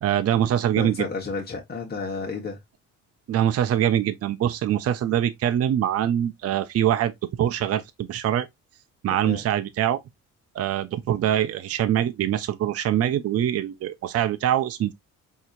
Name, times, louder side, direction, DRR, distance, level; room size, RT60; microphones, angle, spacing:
voice 1, 0.0-1.1 3.3-7.1 7.4-8.5 9.0-10.0 10.5-14.9, right 11 dB, 55° right, 0.5 m, -23 dB
voice 2, 0.8-2.6 9.1-9.4, left 4 dB, 30° left, 1.2 m, -32 dB
4.2 x 2.9 x 2.4 m
cardioid pair, 90°, 30 cm